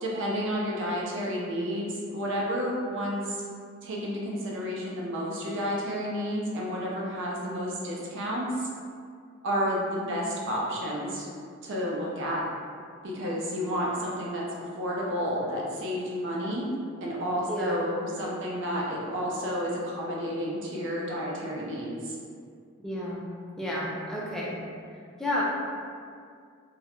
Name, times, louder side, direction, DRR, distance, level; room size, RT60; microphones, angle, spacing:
voice 1, 0.0-3.4 3.8-8.7 9.4-11.3 11.6-12.4 13.0-14.4 14.8-16.7 17.0-22.2, equal, 60° right, -3 dB, 0.5 m, -31 dB
voice 2, 22.8-23.2 23.6-24.5 25.2-25.4, left 1 dB, ahead, -6 dB, 0.3 m, -31 dB
2.3 x 2.0 x 2.9 m, 2.2 s
head